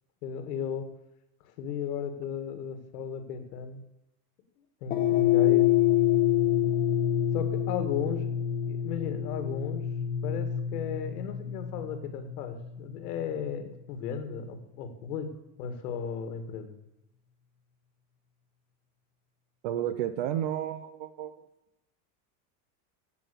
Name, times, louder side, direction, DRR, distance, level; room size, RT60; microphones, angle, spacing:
voice 1, 0.2-0.9 1.6-3.8 4.8-5.7 7.3-8.3 8.7-9.8 10.2-15.3 15.6-16.8, left 7 dB, 75° left, 8 dB, 2.1 m, -35 dB
sound 1, 4.9-13.3, left 11 dB, 20° left, 0.5 m, -27 dB
voice 2, 19.6-21.3, right 11 dB, 35° right, 12 dB, 0.4 m, -31 dB
15.5 x 5.7 x 6.9 m, 0.89 s
supercardioid pair, 175°, 46 cm